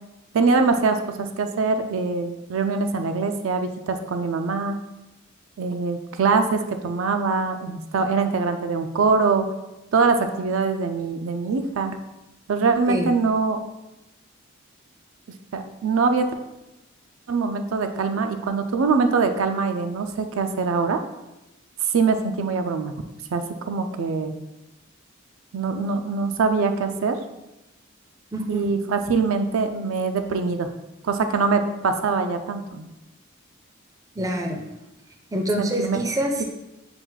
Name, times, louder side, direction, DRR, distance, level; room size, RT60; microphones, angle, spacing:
voice 1, 0.3-4.8 5.6-9.5 9.9-12.0 12.5-13.6 15.5-16.3 17.3-21.0 21.9-22.9 23.3-24.4 25.5-27.2 28.5-30.7 31.0-32.9 35.6-36.0, right 4 dB, 80° right, 7 dB, 0.4 m, -23 dB
voice 2, 28.3-28.7 34.2-34.6 35.3-36.4, equal, 15° right, 3 dB, 0.4 m, -26 dB
5.8 x 2.3 x 3.8 m, 0.95 s
head